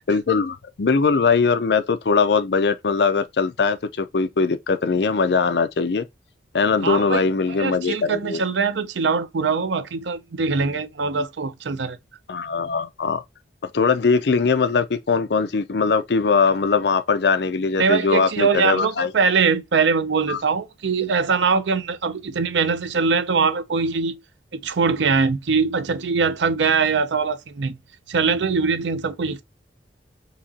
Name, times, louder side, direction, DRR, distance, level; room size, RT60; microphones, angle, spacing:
voice 1, 0.1-6.1 6.5-8.4 12.3-13.2 13.7-19.1 20.3-20.4, left 4 dB, 70° left, 0.5 m, -21 dB
voice 2, 6.8-7.2 7.6-12.0 17.8-24.2 24.5-27.8 28.1-29.4, right 5 dB, 85° right, 0.5 m, -22 dB
4.8 x 2.9 x 2.7 m
head